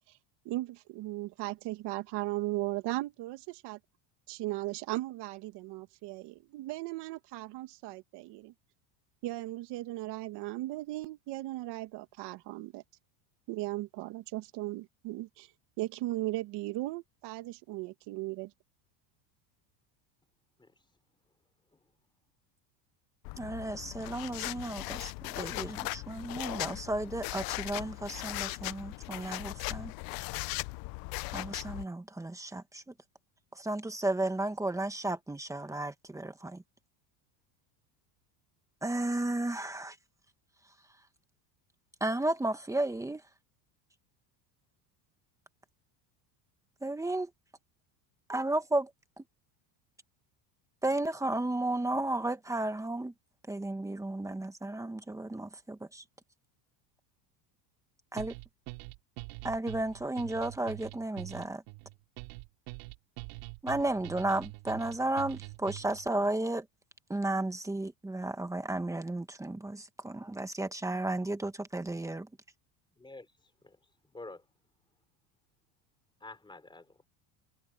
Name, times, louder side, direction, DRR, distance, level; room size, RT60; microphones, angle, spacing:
voice 1, 0.4-3.8 4.3-8.5 9.2-12.8 13.5-15.5 15.8-18.5, right 18 dB, 55° right, 1.8 m, -37 dB
sound 1, 23.3-31.9, left 22 dB, 50° left, 0.6 m, -38 dB
voice 2, 23.4-29.9 31.3-32.8 33.5-36.6 38.8-40.0 42.0-43.2 46.8-47.3 48.3-48.9 49.2-49.3 50.8-53.1 53.5-56.0 58.1-58.3 59.4-61.6 63.6-66.7 67.1-72.2, right 2 dB, 5° right, 1.5 m, -33 dB
sound 2, 58.2-66.1, right 25 dB, 75° right, 2.8 m, -44 dB
voice 3, 73.0-74.5 76.2-77.1, left 2 dB, 10° left, 3.7 m, -50 dB
cardioid pair, 150°, 49 cm